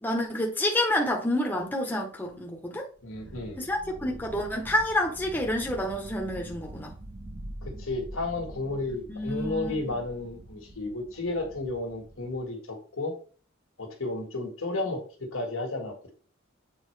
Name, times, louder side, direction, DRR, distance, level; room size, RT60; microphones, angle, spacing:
voice 1, 0.0-2.9 3.6-6.9 9.1-9.8, left 1 dB, 10° left, 0.9 m, -28 dB
Following the Events, 2.2-2.3 2.5-2.6 3.0-12.5, right 1 dB, 30° right, 0.8 m, -44 dB
voice 2, 3.0-3.6 7.6-13.1 13.8-16.1, left 2 dB, 70° left, 1.6 m, -33 dB
7.6 x 4.1 x 3.3 m
head